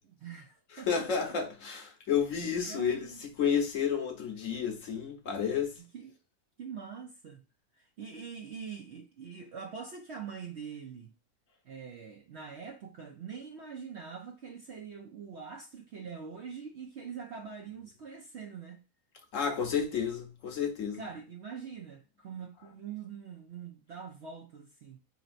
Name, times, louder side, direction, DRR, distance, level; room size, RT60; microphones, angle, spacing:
voice 1, 0.0-1.4 2.6-3.2 5.8-6.2 6.6-7.4 7.7-11.1 11.6-18.8 20.9-25.0, right 6 dB, 60° right, 0.7 m, -44 dB
voice 2, 0.7-5.8 19.3-21.0, left 7 dB, 60° left, 1.1 m, -31 dB
4.2 x 3.2 x 2.5 m
omnidirectional pair, 1.7 m